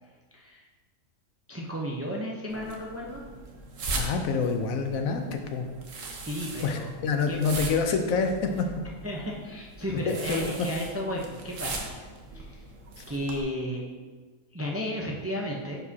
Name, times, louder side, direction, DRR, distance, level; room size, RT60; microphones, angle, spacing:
voice 1, 0.3-0.6 1.5-3.2 6.2-6.9 7.3-7.4 9.0-11.9 12.3-12.6 13.1-13.8 14.5-15.8, equal, 15° right, -2 dB, 0.5 m, -33 dB
sound 1, 2.5-13.4, right 3 dB, 70° right, 1.3 m, -39 dB
voice 2, 4.0-5.7 6.6-8.7 10.1-10.5 13.0-13.1, left 5 dB, 80° left, 5 dB, 1.1 m, -27 dB
10.5 x 4.8 x 2.8 m, 1.4 s
omnidirectional pair, 1.4 m